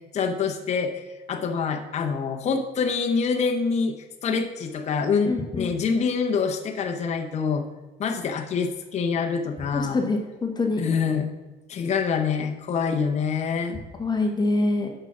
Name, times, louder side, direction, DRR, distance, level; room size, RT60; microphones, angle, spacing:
voice 1, 0.1-1.0 1.3-3.9 4.2-7.6 8.0-10.0 10.8-11.4 11.7-13.8, left 5 dB, 40° left, 3 dB, 0.7 m, -25 dB
voice 2, 5.2-5.7 9.7-10.8 14.0-14.9, left 2 dB, 25° left, 3 dB, 1.1 m, -25 dB
6.7 x 5.9 x 5.9 m, 1.2 s
cardioid pair, 110°, 17 cm